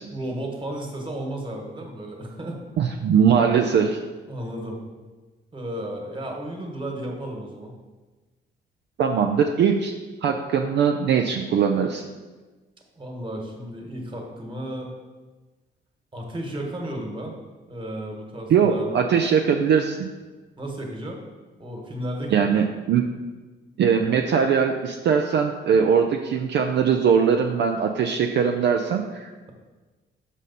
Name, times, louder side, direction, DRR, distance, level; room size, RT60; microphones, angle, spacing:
voice 1, 0.1-2.6 4.3-4.8 5.5-7.7 12.9-14.9 16.1-17.3 17.7-18.9 20.6-21.2 21.6-22.5, right 1 dB, 25° right, 1 dB, 1.5 m, -33 dB
voice 2, 2.8-4.0 9.0-9.9 10.2-12.1 18.5-20.1 22.3-23.0 23.8-29.3, right 7 dB, 65° right, 3 dB, 0.5 m, -21 dB
6.2 x 5.3 x 4.1 m, 1.3 s
cardioid pair, 90°, 20 cm